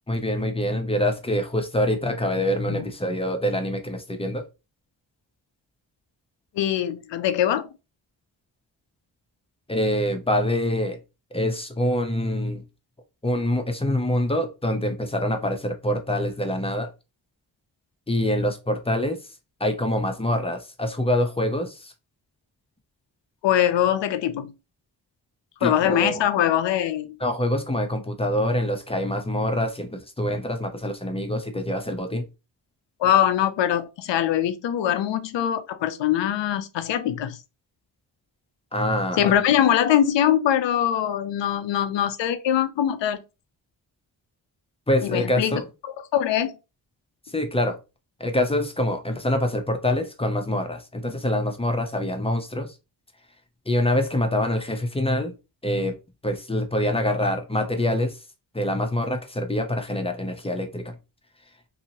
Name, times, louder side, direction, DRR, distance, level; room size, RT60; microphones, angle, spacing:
voice 1, 0.1-4.4 9.7-11.0 11.3-12.6 13.2-16.9 18.1-19.2 19.6-21.9 25.6-26.2 27.2-32.3 38.7-39.3 44.9-45.7 47.3-47.8 48.2-52.7 53.7-55.3 55.6-56.0 56.2-58.1 58.5-61.0, left 1 dB, 15° left, 0.7 m, -25 dB
voice 2, 6.5-7.7 23.4-24.5 25.6-27.2 33.0-37.4 39.2-43.2 45.0-45.6 46.1-46.6, left 10 dB, 80° left, 0.6 m, -22 dB
2.8 x 2.7 x 2.8 m
cardioid pair, 50°, 44 cm